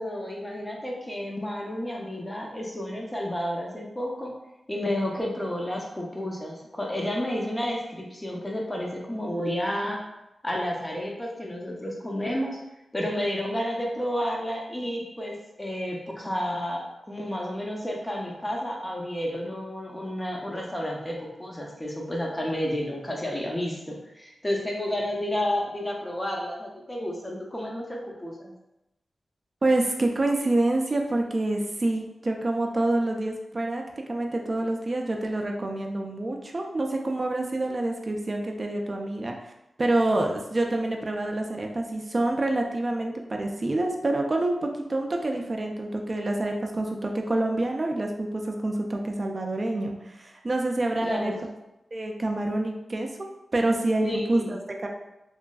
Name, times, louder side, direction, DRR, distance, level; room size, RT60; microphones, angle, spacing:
voice 1, 0.0-4.3 4.7-10.0 10.4-12.6 12.9-28.5 51.0-51.4 54.0-54.6, left 1 dB, 15° left, -1 dB, 0.6 m, -31 dB
voice 2, 29.6-33.8 34.1-39.3 39.8-51.3 51.9-53.1 53.5-54.9, right 2 dB, 35° right, 2 dB, 0.4 m, -27 dB
3.0 x 2.5 x 2.3 m, 0.90 s
wide cardioid pair, 95°, 0 cm